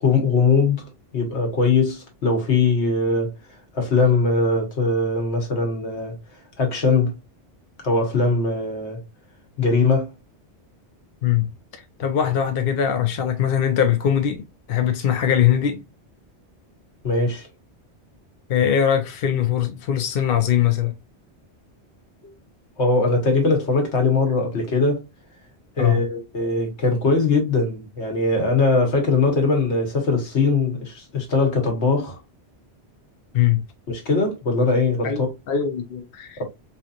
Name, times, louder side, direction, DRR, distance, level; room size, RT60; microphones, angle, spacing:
voice 1, 0.0-0.8 1.1-3.3 3.7-6.2 6.6-7.2 7.8-9.0 9.6-10.1 17.0-17.5 22.8-25.0 25.8-32.2 33.9-35.3, left 3 dB, 75° left, 1.5 m, -21 dB
voice 2, 11.2-14.4 14.7-15.8 18.5-20.9 25.8-26.0 33.3-33.6 35.0-36.4, left 9 dB, 60° left, 0.8 m, -21 dB
4.4 x 2.8 x 2.4 m
omnidirectional pair, 1.2 m